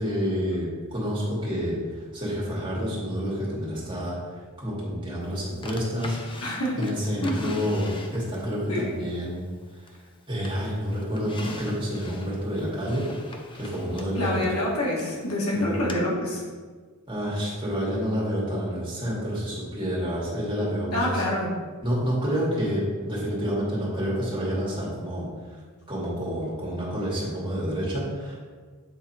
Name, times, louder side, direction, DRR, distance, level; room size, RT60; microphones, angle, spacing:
voice 1, 0.0-4.2 4.6-6.2 6.8-9.5 10.3-14.5 15.5-15.9 17.1-21.2 21.8-25.6 25.9-28.4, equal, 20° right, -6 dB, 2.1 m, -29 dB
Drawer open or close, 5.6-8.5 9.0-10.1 10.4-15.2 15.9-16.0, left 2 dB, 20° left, 0.6 m, -41 dB
voice 2, 6.4-6.9 7.2-7.6 8.7-8.9 14.2-16.4 20.9-21.5, left 1 dB, 75° left, -5 dB, 1.9 m, -27 dB
8.1 x 3.7 x 4.4 m, 1.5 s
head